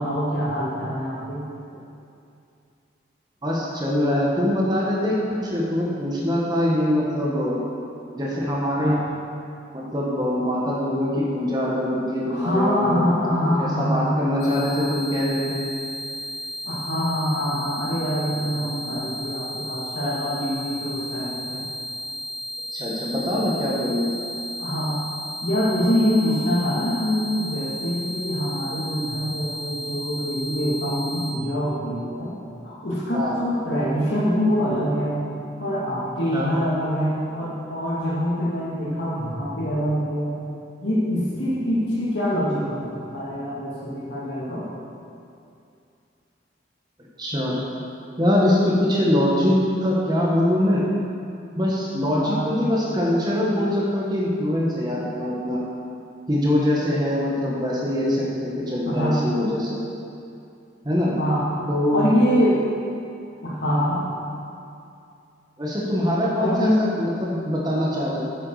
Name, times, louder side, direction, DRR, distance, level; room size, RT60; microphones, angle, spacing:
voice 1, 0.0-1.4 8.8-9.0 12.3-14.9 16.6-21.7 24.6-25.0 25.4-32.3 32.6-35.2 35.6-40.3 40.8-44.7 52.2-52.6 58.9-59.3 61.2-61.6 61.9-62.6 63.4-64.0 66.4-66.8, equal, 65° left, -7 dB, 2.6 m, -24 dB
voice 2, 3.4-7.6 8.1-8.9 9.7-13.2 13.6-15.6 22.7-24.2 33.1-33.4 36.3-36.5 47.2-47.6 48.2-50.8 51.6-55.6 56.3-59.8 60.8-61.1 61.7-62.0 65.6-68.2, left 1 dB, 20° right, -5 dB, 1.3 m, -23 dB
sound 1, 14.4-31.3, equal, 85° left, 1.7 m, -34 dB
8.9 x 8.0 x 4.9 m, 2.6 s
head